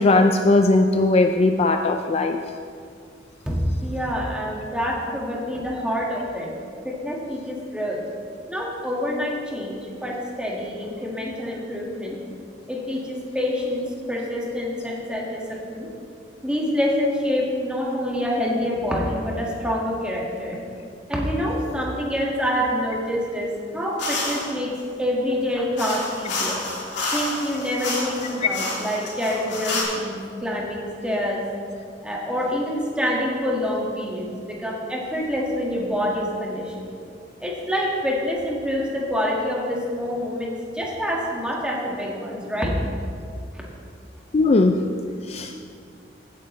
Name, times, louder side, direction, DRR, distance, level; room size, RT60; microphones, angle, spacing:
voice 1, 0.0-2.4 44.3-44.8 45.3-45.5, left 2 dB, 35° left, 6 dB, 0.4 m, -18 dB
voice 2, 3.5-6.5 6.8-8.0 8.5-12.2 12.7-15.9 16.4-20.6 21.1-26.6 27.1-31.4 32.0-36.9 37.4-42.8 43.5-43.6, equal, 5° right, -3 dB, 1.8 m, -26 dB
sound 1, 24.0-24.5 25.8-29.8, left 2 dB, 70° left, 3.3 m, -29 dB
16.0 x 9.4 x 3.2 m, 2.3 s
head